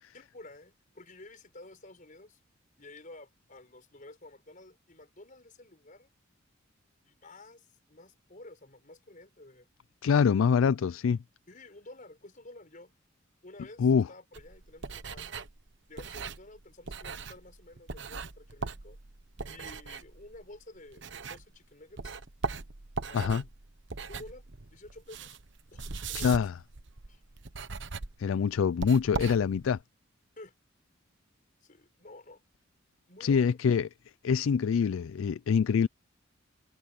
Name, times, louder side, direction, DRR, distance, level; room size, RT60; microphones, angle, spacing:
voice 1, 0.1-2.4 2.8-6.1 7.0-9.7 11.5-12.9 13.4-15.5 15.9-19.0 19.5-22.2 23.1-23.5 24.1-25.4 25.6-26.4 27.1-27.2 30.4-30.5 31.6-32.4 33.1-33.4, left 2 dB, 40° left, 5.1 m, -51 dB
voice 2, 10.0-11.2 13.8-14.1 23.1-23.4 26.1-26.6 28.2-29.8 33.2-33.9 34.2-35.9, left 6 dB, 80° left, 0.4 m, -25 dB
sound 1, 14.3-21.7 22.0-29.8, right 4 dB, 65° right, 1.1 m, -40 dB
head